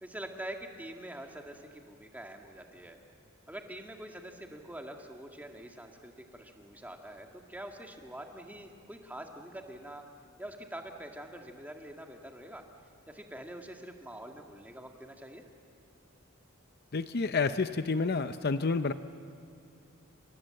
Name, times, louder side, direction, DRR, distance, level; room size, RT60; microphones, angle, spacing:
voice 1, 0.0-3.0 3.5-10.0 10.4-12.6 13.1-15.4, right 1 dB, 10° right, 3 dB, 1.9 m, -45 dB
voice 2, 16.9-18.9, left 4 dB, 50° left, 11 dB, 0.6 m, -29 dB
28.5 x 26.0 x 7.7 m, 2.4 s
head